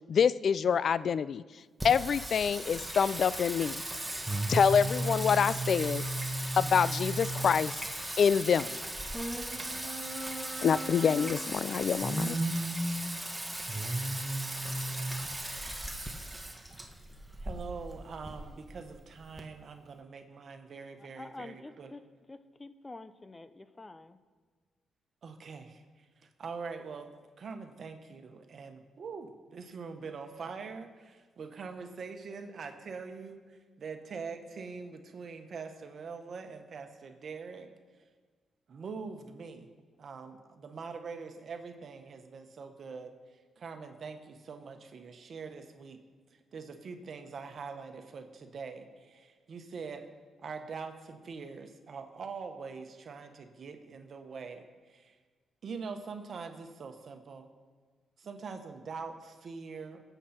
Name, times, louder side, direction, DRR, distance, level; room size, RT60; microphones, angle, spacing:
voice 1, 0.1-1.4 1.8-3.8 4.5-6.0 6.6-7.7 8.2-8.8 10.6-12.4, left 7 dB, 60° left, 18 dB, 0.4 m, -26 dB
Singing, 1.8-19.4, right 1 dB, 10° right, 1.4 m, -35 dB
voice 2, 17.4-21.9 25.2-26.0 26.4-27.1 27.4-37.7 38.7-39.7 40.0-43.1 43.6-46.0 46.5-50.1 50.4-55.1 55.6-57.5 58.2-60.0, right 5 dB, 60° right, 6 dB, 1.3 m, -43 dB
voice 3, 21.0-22.0 22.3-24.2, left 2 dB, 25° left, 13 dB, 0.7 m, -47 dB
19.5 x 8.2 x 4.4 m, 1.4 s
cardioid pair, 70°, 0 cm